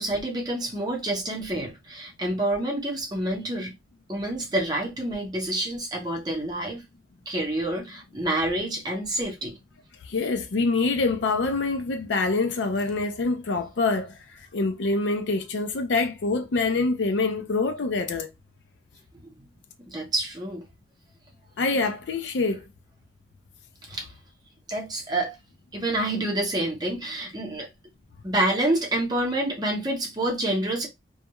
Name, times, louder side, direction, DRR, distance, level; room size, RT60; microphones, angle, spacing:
voice 1, 0.0-3.7 4.1-6.8 7.3-9.6 19.4-19.5 19.8-20.7 23.9-24.1 24.7-25.4 25.7-27.7 28.2-30.9, right 1 dB, 20° right, 0.8 m, -28 dB
voice 2, 10.0-18.3 21.6-22.6, left 3 dB, 85° left, 0.5 m, -25 dB
2.3 x 2.2 x 2.9 m
head